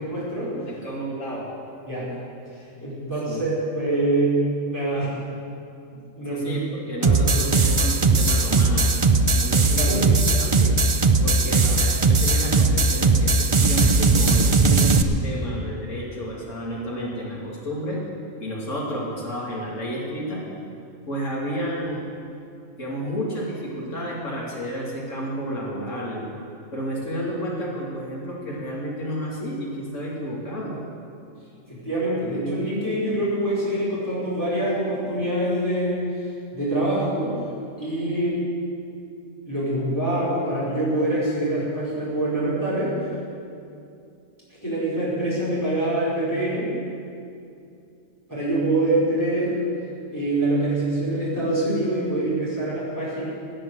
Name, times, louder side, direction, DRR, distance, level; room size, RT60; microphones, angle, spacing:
voice 1, 0.0-0.5 1.9-2.1 2.8-4.4 4.7-5.1 5.9-6.5 7.0-7.4 9.8-10.0 11.4-11.5 31.7-36.0 36.5-37.3 37.8-38.4 39.5-42.9 44.6-46.7 48.3-49.6 50.1-53.2, right 1 dB, 15° left, -8 dB, 4.9 m, -25 dB
voice 2, 0.7-1.5 3.3-3.4 6.3-8.9 9.3-10.1 10.4-10.8 11.2-18.0 18.4-20.4 21.1-22.0 22.8-26.3 26.7-30.8, equal, 65° left, -4 dB, 3.0 m, -31 dB
sound 1, 7.0-15.0, right 3 dB, 40° right, 0.4 m, -19 dB
17.0 x 9.2 x 8.1 m, 2.5 s
omnidirectional pair, 1.4 m